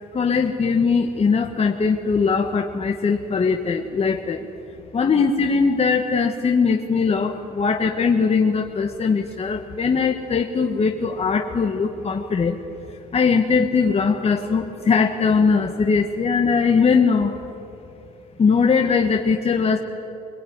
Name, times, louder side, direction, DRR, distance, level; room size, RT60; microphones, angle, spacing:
voice 1, 0.1-4.4 4.9-12.6 13.1-17.3 18.4-19.8, left 5 dB, 40° left, 3 dB, 1.6 m, -20 dB
23.0 x 22.0 x 9.8 m, 2.9 s
supercardioid pair, 75°, 17 cm